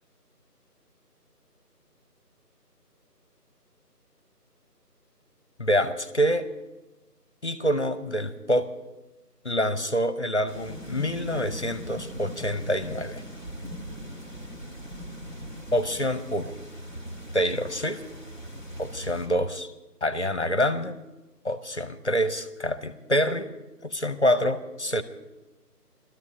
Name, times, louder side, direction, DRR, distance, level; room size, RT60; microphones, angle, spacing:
voice 1, 5.6-6.5 7.4-8.7 9.4-13.2 15.7-16.6 17.3-18.0 18.8-19.7 20.0-21.0 21.4-23.5 23.8-25.0, equal, 45° left, 13 dB, 0.9 m, -26 dB
sound 1, 10.5-19.3, equal, 30° right, 2.3 m, -40 dB
15.5 x 13.5 x 5.4 m, 1.1 s
figure-of-eight pair, 170°, 48 cm